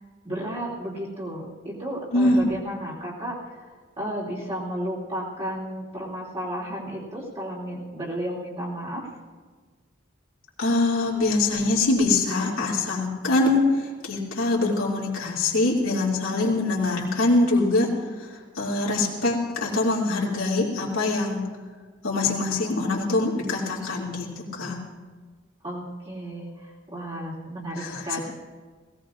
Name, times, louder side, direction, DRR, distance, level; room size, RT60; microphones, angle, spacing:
voice 1, 0.2-9.1 25.6-28.2, equal, 30° right, -8 dB, 2.9 m, -33 dB
voice 2, 2.1-2.5 10.6-17.9 18.2-18.3 18.5-21.4 22.0-24.8 27.7-28.2, left 2 dB, 85° left, -5 dB, 2.6 m, -23 dB
20.5 x 17.0 x 2.5 m, 1.5 s
head